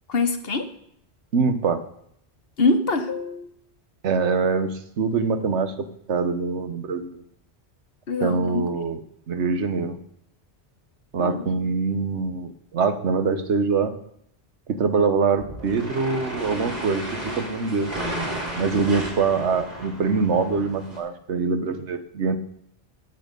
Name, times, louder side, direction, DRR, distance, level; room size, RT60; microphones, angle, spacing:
voice 1, 0.1-0.7 2.6-3.5 8.1-8.6 11.2-11.4, left 3 dB, 60° left, 7 dB, 1.3 m, -24 dB
voice 2, 1.3-1.8 4.0-7.2 8.2-9.0 9.3-9.9 11.1-13.9 14.7-17.9 18.5-22.4, right 5 dB, 90° right, 10 dB, 1.3 m, -24 dB
sound 1, 15.4-21.0, right 1 dB, 45° right, 3.1 m, -33 dB
15.5 x 7.1 x 5.2 m, 0.71 s
omnidirectional pair, 1.1 m